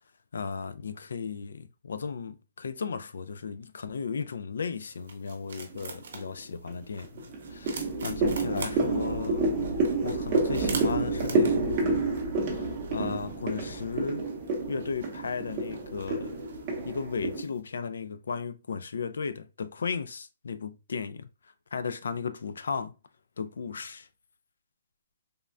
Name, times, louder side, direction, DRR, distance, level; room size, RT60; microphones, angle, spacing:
voice 1, 0.3-9.5 10.0-12.2 12.5-14.2 14.7-16.4 16.8-21.3 21.7-22.9 23.4-24.1, left 5 dB, 80° left, 0.3 m, -35 dB
sound 1, 4.7-17.6, right 4 dB, 60° right, 0.7 m, -45 dB
Echoing footsteps down hallway, 5.7-6.2 6.7-17.4, right 3 dB, 20° right, 0.7 m, -29 dB
3.4 x 2.1 x 2.4 m
hypercardioid pair, 170°, 0 cm